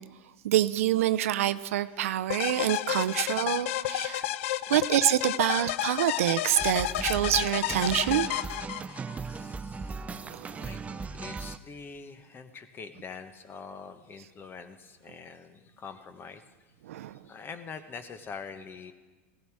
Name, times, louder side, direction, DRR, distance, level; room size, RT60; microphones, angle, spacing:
voice 1, 0.4-4.3 4.7-8.3 10.2-10.7 16.8-17.2, right 12 dB, 85° right, 12 dB, 0.5 m, -27 dB
sound 1, 2.3-9.2, left 13 dB, 75° left, 0.4 m, -31 dB
sound 2, 6.6-11.6, right 4 dB, 20° right, 0.5 m, -38 dB
voice 2, 9.3-10.0 10.6-16.4 17.3-18.9, left 5 dB, 30° left, 10 dB, 1.2 m, -44 dB
16.5 x 15.5 x 4.7 m, 1.3 s
hypercardioid pair, 105°, 7 cm